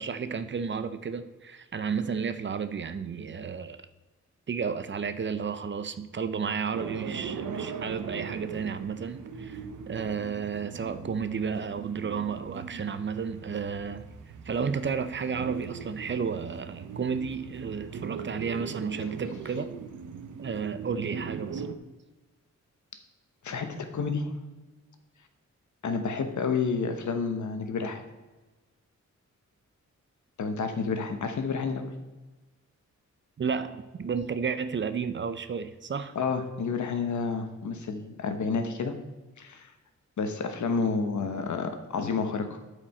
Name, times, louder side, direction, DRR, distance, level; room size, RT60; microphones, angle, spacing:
voice 1, 0.0-3.8 4.5-9.6 9.9-14.0 14.5-19.7 20.4-21.7 33.4-36.1, right 6 dB, 40° right, 11 dB, 0.5 m, -32 dB
sound 1, 6.7-21.8, right 6 dB, 85° right, 0.8 m, -40 dB
voice 2, 23.4-24.3 25.8-28.0 30.4-31.9 36.1-38.9 39.4-39.7 40.2-42.5, left 5 dB, 75° left, 7 dB, 1.1 m, -30 dB
12.5 x 5.1 x 4.3 m, 1.2 s
wide cardioid pair, 170°, 30 cm